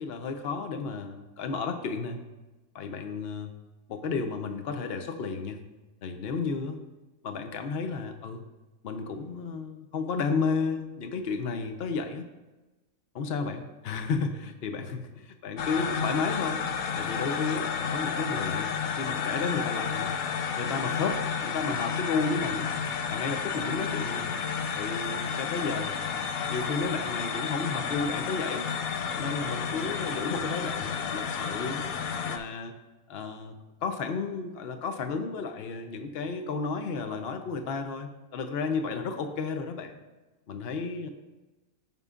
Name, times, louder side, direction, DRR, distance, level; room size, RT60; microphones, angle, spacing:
voice 1, 0.0-2.2 2.7-3.5 3.9-5.6 6.0-6.8 7.2-8.4 8.8-12.3 13.1-16.6 16.9-20.2 20.6-22.7 23.1-24.3 24.7-26.0 26.5-28.7 29.1-31.8 32.1-32.7 33.1-40.0 40.5-41.1, left 4 dB, 50° left, 6 dB, 0.9 m, -32 dB
sound 1, 15.6-32.4, left 6 dB, 75° left, 1.1 m, -31 dB
15.5 x 5.4 x 2.5 m, 1.1 s
omnidirectional pair, 1.5 m